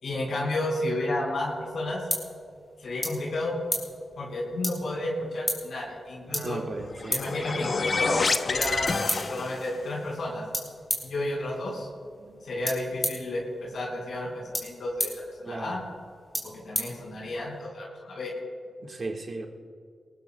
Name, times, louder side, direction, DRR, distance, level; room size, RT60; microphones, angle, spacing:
voice 1, 0.0-2.1 2.8-3.6 4.2-6.6 7.1-10.4 11.0-11.9 12.4-15.8 16.4-18.3, left 1 dB, 75° left, -3 dB, 4.3 m, -32 dB
sound 1, 1.3-17.6, equal, 10° left, 3.7 m, -37 dB
voice 2, 6.3-7.2 12.2-12.4 15.5-15.8 18.8-19.5, right 3 dB, 50° right, 2 dB, 1.5 m, -36 dB
sound 2, 6.8-9.8, left 4 dB, 50° left, 0.7 m, -28 dB
23.0 x 20.0 x 2.2 m, 2.3 s
wide cardioid pair, 100°, 0 cm